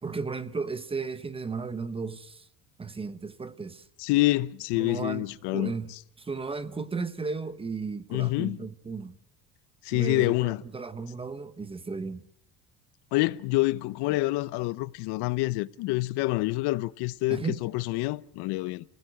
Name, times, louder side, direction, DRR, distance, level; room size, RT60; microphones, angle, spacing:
voice 1, 0.0-2.5 2.8-3.9 4.7-5.9 6.2-9.2 9.9-12.2 17.3-17.6, right 4 dB, 15° right, 0.9 m, -35 dB
voice 2, 4.0-5.7 8.1-8.6 9.8-10.6 13.1-18.8, left 19 dB, 80° left, 1.0 m, -27 dB
29.0 x 17.0 x 7.9 m
cardioid pair, 160°, 40 cm